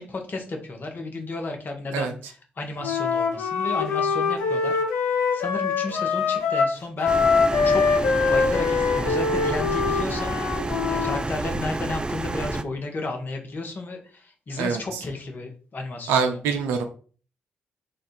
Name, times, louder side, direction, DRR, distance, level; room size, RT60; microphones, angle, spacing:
voice 1, 0.0-4.8 5.3-7.2 7.6-7.8 8.3-10.8 11.0-16.4, left 2 dB, 50° left, 3 dB, 1.1 m, -33 dB
Wind instrument woodwind instrument, 2.8-11.2, left 5 dB, 85° left, 0.8 m, -23 dB
sound 1, 7.1-12.6, right 2 dB, 20° right, 0.4 m, -29 dB
voice 2, 16.1-16.8, right 6 dB, 85° right, 6 dB, 0.6 m, -24 dB
3.2 x 2.4 x 4.4 m, 0.40 s
hypercardioid pair, 45°, 4 cm